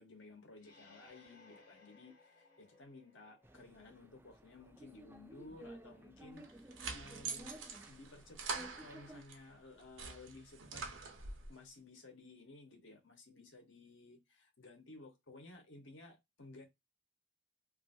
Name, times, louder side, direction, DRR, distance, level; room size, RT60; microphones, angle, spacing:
voice 1, 0.0-6.4 6.9-7.5 7.9-10.9 11.5-16.7, left 2 dB, 80° left, 1.1 m, -56 dB
sound 1, 0.6-4.2, left 3 dB, 50° left, 1.0 m, -64 dB
sound 2, 3.4-9.2, right 1 dB, 10° right, 0.4 m, -55 dB
sound 3, 6.4-9.4 9.8-11.5, right 4 dB, 85° right, 0.8 m, -45 dB
2.8 x 2.6 x 2.6 m
head